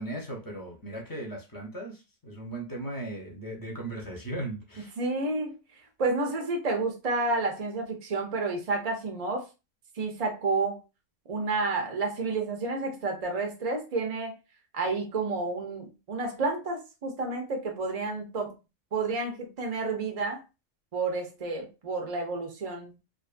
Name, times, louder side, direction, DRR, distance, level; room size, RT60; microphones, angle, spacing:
voice 1, 0.0-4.9, right 1 dB, 25° left, 0.5 m, -37 dB
voice 2, 5.0-5.6 6.0-9.4 9.9-10.8 11.3-14.3 14.7-18.5 18.9-20.4 20.9-23.0, right 3 dB, 50° right, 0.4 m, -30 dB
2.5 x 2.5 x 2.4 m
omnidirectional pair, 1.3 m